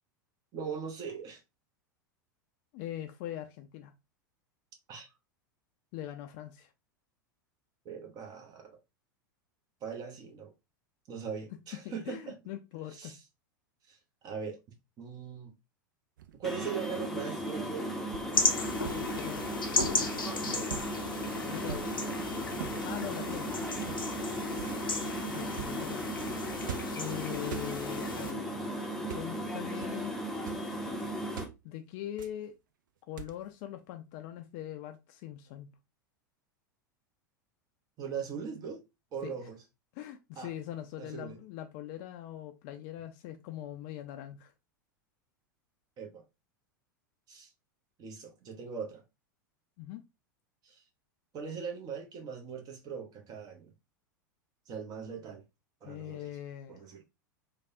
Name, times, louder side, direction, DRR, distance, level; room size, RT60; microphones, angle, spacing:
voice 1, 0.5-1.4 4.9-5.1 7.8-8.8 9.8-10.5 11.1-12.4 12.9-13.2 13.9-14.0 14.2-14.6 15.0-15.5 16.3-18.4 20.5-20.7 22.6-22.9 24.5-24.8 38.0-38.8 39.1-39.6 40.4-40.5 41.0-41.4 46.0-46.2 47.3-47.5 48.0-49.0 50.6-50.8 51.3-53.7 54.7-55.4 55.8-56.2 56.7-57.0, right 6 dB, 35° right, 0.9 m, -40 dB
voice 2, 2.7-3.9 5.9-6.7 11.8-13.2 18.9-19.6 21.4-21.9 22.8-23.5 25.3-26.6 26.9-28.7 29.1-30.2 31.6-32.5 33.1-35.7 39.2-39.3 39.9-44.5 49.8-50.1 55.8-56.8, left 12 dB, 50° left, 0.4 m, -42 dB
sound 1, 16.2-16.6 18.1-18.4 18.8-19.1 19.7-20.1 20.7-21.0 21.7-22.0 22.6-22.9 23.8-24.2 24.6-24.9 25.5-25.8 26.6-27.1 27.4-27.7 28.9-29.3 29.8-30.0 30.3-30.7 31.4-31.6 32.2-32.5 33.2-33.5, right 10 dB, 70° right, 0.4 m, -42 dB
sound 2, 16.4-31.4, equal, 5° left, 0.7 m, -36 dB
sound 3, 18.3-28.3, left 3 dB, 90° left, 0.6 m, -35 dB
3.3 x 2.2 x 2.6 m
figure-of-eight pair, 90°, 11 cm